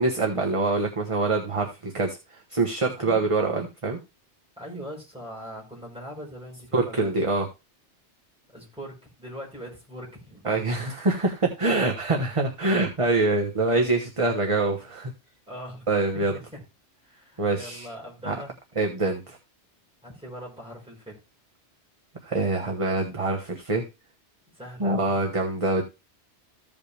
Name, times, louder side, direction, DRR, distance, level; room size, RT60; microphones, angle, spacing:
voice 1, 0.0-4.0 6.7-7.5 10.4-15.1 15.9-16.4 17.4-17.9 18.3-18.4 18.8-19.4 22.2-23.8 24.8-25.8, right 3 dB, 30° right, 1 dB, 1.2 m, -25 dB
voice 2, 4.6-7.1 8.5-10.4 15.5-16.6 17.0-18.5 20.0-21.1 24.5-25.1, equal, 5° right, -3 dB, 4.9 m, -41 dB
15.0 x 5.3 x 3.3 m, 0.26 s
omnidirectional pair, 1.2 m